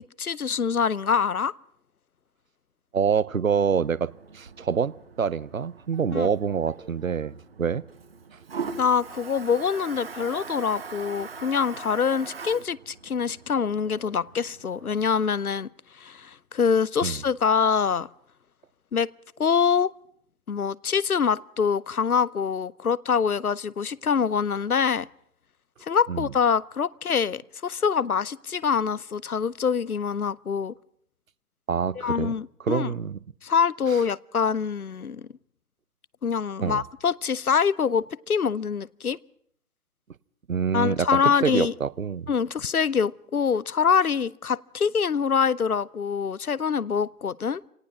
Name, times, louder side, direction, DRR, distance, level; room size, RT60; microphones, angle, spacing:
voice 1, 0.2-1.5 6.1-6.3 8.8-15.7 16.0-18.1 18.9-19.1 19.4-19.9 20.5-25.1 25.8-30.7 32.0-32.9 33.4-35.3 36.2-39.2 40.7-41.7 42.3-47.6, left 6 dB, 75° left, 0.8 m, -25 dB
voice 2, 2.9-7.8 17.0-17.2 26.1-26.3 31.7-32.3 32.6-33.2 36.6-36.8 40.5-41.1 41.4-42.3, right 6 dB, 65° right, 0.8 m, -26 dB
Toilet flush, 3.5-15.1, right 5 dB, 40° right, 1.4 m, -41 dB
26.0 x 18.0 x 6.0 m
figure-of-eight pair, 150°, 44 cm